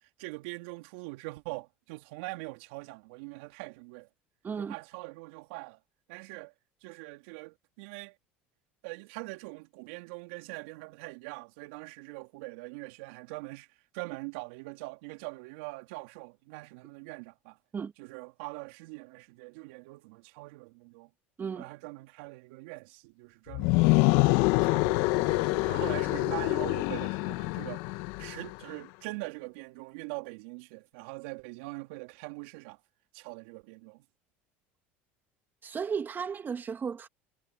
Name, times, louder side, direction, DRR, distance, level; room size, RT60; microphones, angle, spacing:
voice 1, 0.0-4.1 4.6-5.8 6.1-6.5 6.8-8.1 8.8-17.6 18.0-21.1 21.5-24.1 24.6-32.8 33.1-34.0, right 26 dB, 70° right, 3.1 m, -43 dB
voice 2, 4.4-4.7 17.7-17.9 21.4-21.7 35.6-37.1, right 6 dB, 30° right, 2.6 m, -34 dB
sound 1, 23.5-28.5, left 24 dB, 70° left, 1.5 m, -26 dB
hypercardioid pair, 75°, 6 cm